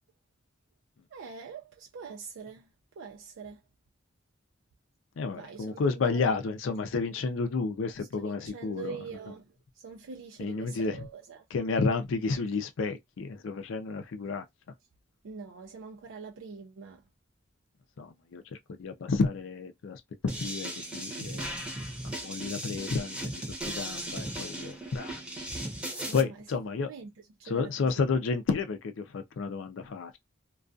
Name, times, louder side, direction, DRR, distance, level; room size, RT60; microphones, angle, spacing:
voice 1, 1.1-2.7 3.0-3.6 5.3-6.2 8.0-11.4 15.2-17.1 26.0-26.4 26.8-27.1 27.4-28.1, right 5 dB, 85° right, 0.4 m, -44 dB
voice 2, 5.2-9.0 10.4-11.1 11.5-14.4 18.0-18.4 18.8-21.5 22.2-23.5 23.7-25.2 26.1-26.9 27.4-30.2, left 4 dB, 85° left, 0.4 m, -31 dB
sound 1, 20.3-26.2, right 1 dB, 5° right, 0.7 m, -37 dB
2.3 x 2.3 x 2.4 m
head